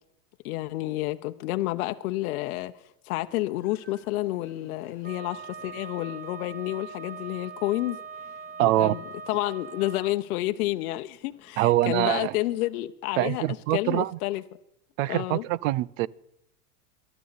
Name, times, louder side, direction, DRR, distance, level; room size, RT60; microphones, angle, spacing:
voice 1, 0.4-2.7 3.0-8.0 8.6-9.0 9.3-14.4 15.1-15.4, left 17 dB, 65° left, 0.8 m, -30 dB
sound 1, 3.2-12.9, right 2 dB, 35° right, 7.9 m, -61 dB
Wind instrument woodwind instrument, 5.0-10.2, right 5 dB, 20° right, 0.9 m, -42 dB
voice 2, 8.6-9.0 11.6-12.3 13.2-14.2 15.0-16.1, right 16 dB, 55° right, 0.6 m, -24 dB
23.0 x 12.0 x 4.1 m
supercardioid pair, 130°, 46 cm